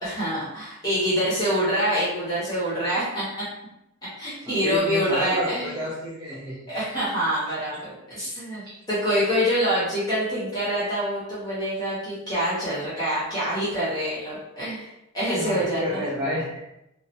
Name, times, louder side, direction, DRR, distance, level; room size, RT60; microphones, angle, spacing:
voice 1, 0.0-3.5 4.2-5.8 6.7-14.9 15.1-16.0, equal, 15° left, -10 dB, 0.8 m, -26 dB
voice 2, 4.6-6.6 8.6-8.8 15.3-16.6, equal, 20° right, -10 dB, 0.4 m, -29 dB
2.3 x 2.0 x 2.8 m, 0.87 s
head